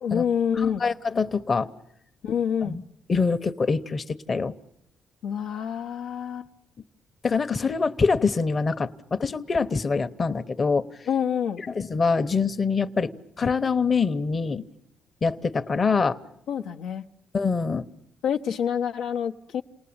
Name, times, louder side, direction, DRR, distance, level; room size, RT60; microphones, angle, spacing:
voice 1, 0.0-0.8 2.2-2.8 5.2-6.5 11.1-11.6 16.5-17.0 18.2-19.6, left 8 dB, 85° left, 2 dB, 0.9 m, -27 dB
voice 2, 0.6-1.7 2.6-2.8 3.1-4.6 7.2-10.9 11.7-14.6 15.2-16.2 17.3-17.8, left 4 dB, 35° left, 10 dB, 1.0 m, -24 dB
28.5 x 19.5 x 8.7 m, 0.79 s
cardioid pair, 90°, 0 cm